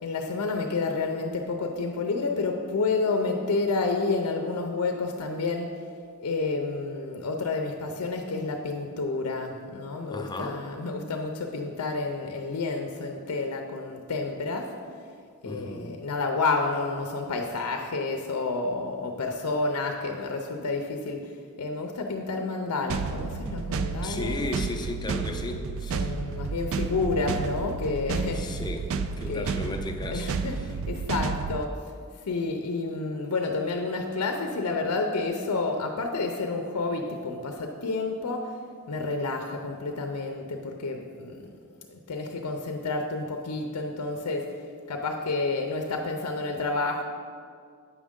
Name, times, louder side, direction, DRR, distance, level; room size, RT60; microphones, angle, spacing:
voice 1, 0.0-5.7 6.2-14.7 15.4-24.4 25.9-28.4 29.3-29.5 30.1-31.7 32.2-38.4 38.9-41.5 41.9-44.5 44.9-47.0, left 3 dB, 90° left, 3 dB, 0.5 m, -30 dB
voice 2, 10.1-10.6 15.4-16.0 24.0-26.1 28.3-28.9 29.2-30.3, left 2 dB, 20° left, 4 dB, 0.5 m, -35 dB
sound 1, 22.9-31.7, right 5 dB, 65° right, 0.3 m, -31 dB
8.3 x 6.2 x 3.6 m, 2.2 s
head